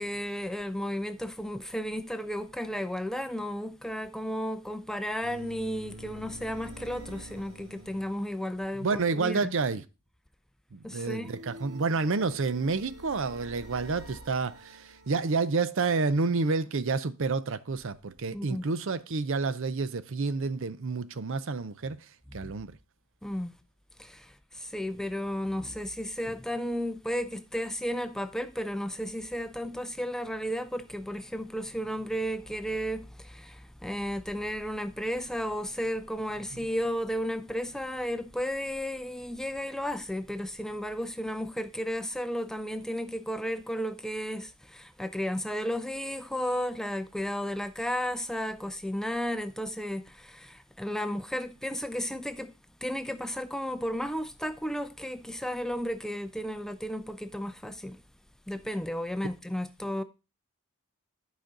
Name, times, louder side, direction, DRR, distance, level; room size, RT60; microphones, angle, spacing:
voice 1, 0.0-9.5 10.8-11.4 18.3-18.7 22.4-22.5 23.2-23.5 24.0-52.5 52.8-58.0 58.5-60.0, equal, ahead, 0.4 m, -33 dB
sound 1, 5.2-8.7 11.0-15.4, right 1 dB, 90° right, 1.8 m, -47 dB
voice 2, 8.8-9.8 10.7-22.8, right 4 dB, 60° right, 0.6 m, -29 dB
11.5 x 5.1 x 3.8 m
head